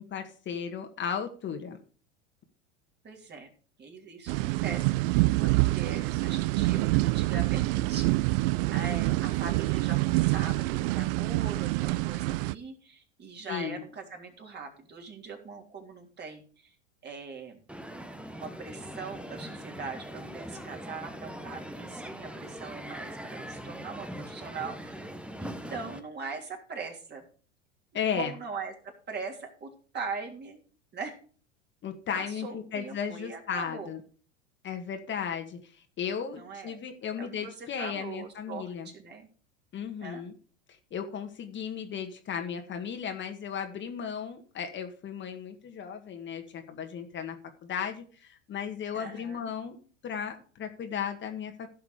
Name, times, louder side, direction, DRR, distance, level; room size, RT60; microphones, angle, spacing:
voice 1, 0.0-1.8 13.5-13.8 27.9-28.3 31.8-34.0 34.6-38.9 39.7-40.3 40.9-49.8 50.0-51.7, left 7 dB, 35° left, 5 dB, 1.9 m, -35 dB
voice 2, 3.0-3.5 3.8-16.7 17.0-17.6 18.3-25.0 25.4-27.3 27.9-30.6 30.9-31.2 32.1-33.9 36.4-36.8 37.2-39.3 40.0-40.2 48.9-49.5, right 4 dB, 30° right, 2 dB, 3.4 m, -41 dB
sound 1, 4.3-12.5, right 21 dB, 55° right, 0.5 m, -26 dB
Crowd, 17.7-26.0, equal, 5° right, 1.2 m, -41 dB
15.5 x 5.8 x 5.0 m, 0.41 s
hypercardioid pair, 90°, 34 cm